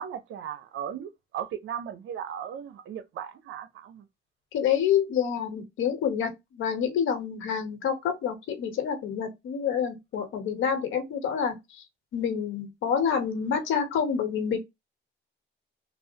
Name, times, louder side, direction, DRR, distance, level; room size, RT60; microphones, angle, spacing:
voice 1, 0.0-4.1, right 9 dB, 75° right, 0.6 m, -37 dB
voice 2, 4.5-11.8 12.1-14.6, left 8 dB, 80° left, 1.0 m, -28 dB
3.3 x 2.0 x 2.7 m
cardioid pair, 90°, 20 cm